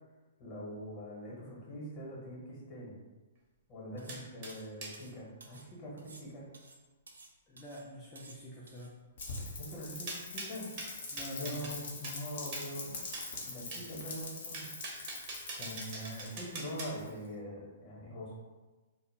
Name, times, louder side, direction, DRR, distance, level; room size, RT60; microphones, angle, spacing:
voice 1, 0.4-3.0 3.7-6.4 9.3-10.7 11.3-13.0 13.4-14.7 14.9-15.3 15.6-18.3, equal, 35° left, -4 dB, 0.9 m, -43 dB
sound 1, 4.0-4.2 4.5-5.7 6.0-7.3 7.6-7.9 8.2-8.9 9.2-9.5, right 3 dB, 75° right, 0.3 m, -55 dB
sound 2, 4.1-5.0 10.1-11.8 12.0-12.2 12.5-12.7 13.1-13.3 13.7-13.9 14.5-16.9, right 3 dB, 40° right, 0.6 m, -43 dB
voice 2, 7.5-9.0 11.1-11.8, equal, 15° left, -7 dB, 0.4 m, -46 dB
Rain, 9.2-17.3, left 3 dB, 55° left, 0.6 m, -44 dB
2.1 x 2.0 x 3.2 m, 1.3 s
figure-of-eight pair, 115°, 0 cm